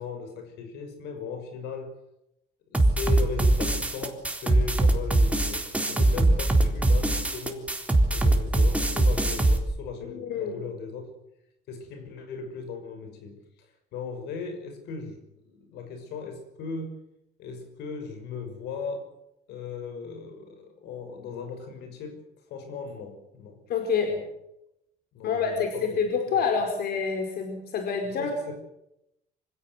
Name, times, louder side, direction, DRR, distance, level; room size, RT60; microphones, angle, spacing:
voice 1, 0.0-2.0 2.7-11.1 11.7-17.0 17.4-19.1 19.5-22.2 22.5-23.6 24.0-24.2 25.1-26.0 26.3-26.4 28.0-28.5, left 5 dB, 85° left, 7 dB, 6.3 m, -38 dB
sound 1, 2.7-9.6, right 2 dB, 10° right, 3.7 m, -22 dB
voice 2, 10.1-10.6 23.7-24.2 25.2-28.5, left 5 dB, 65° left, 3 dB, 4.8 m, -27 dB
25.5 x 16.5 x 8.1 m, 0.82 s
cardioid pair, 110°, 17 cm